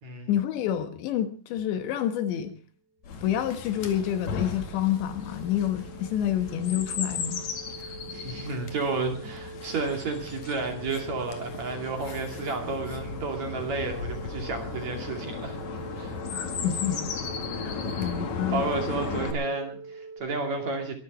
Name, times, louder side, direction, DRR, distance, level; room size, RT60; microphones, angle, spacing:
voice 1, 0.3-2.5 3.2-7.5 16.3-17.0 17.6-18.6, left 10 dB, 80° left, 3.5 m, -28 dB
Chirp tweet, 3.0-19.3, left 5 dB, 50° left, 3.0 m, -36 dB
sound 1, 3.3-20.2, right 4 dB, 80° right, 4.0 m, -45 dB
voice 2, 7.8-15.6 16.0-16.2 17.8-18.1 18.5-20.9, right 3 dB, 45° right, 3.2 m, -32 dB
23.0 x 13.0 x 4.3 m
omnidirectional pair, 5.2 m